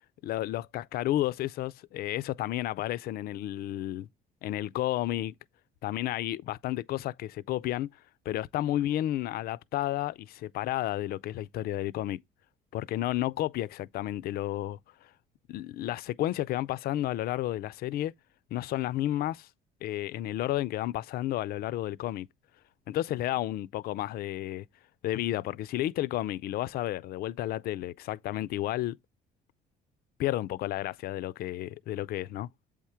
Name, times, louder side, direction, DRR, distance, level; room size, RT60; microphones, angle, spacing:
voice 1, 0.2-4.1 4.4-5.3 5.8-7.9 8.3-12.2 12.7-15.1 15.5-18.1 18.5-19.5 19.8-22.3 22.9-24.7 25.0-29.0 30.2-32.5, left 14 dB, 65° left, 0.4 m, -32 dB
7.9 x 3.5 x 4.3 m
cardioid pair, 110°, 17 cm